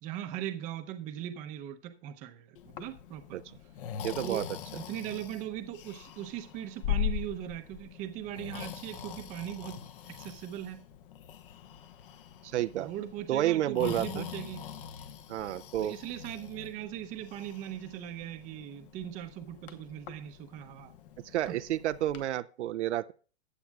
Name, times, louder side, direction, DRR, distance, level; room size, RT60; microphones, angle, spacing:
voice 1, 0.0-3.4 4.2-4.5 4.7-10.8 12.7-14.7 15.8-20.9 21.5-21.6, right 11 dB, 20° right, 0.7 m, -39 dB
Breathing, 2.6-22.2, left 9 dB, 50° left, 1.1 m, -42 dB
voice 2, 4.0-4.5 12.4-12.9 13.3-14.2 15.3-16.0 21.3-23.1, right 13 dB, 75° right, 0.6 m, -30 dB
15.0 x 9.3 x 2.4 m
hypercardioid pair, 150°, 35 cm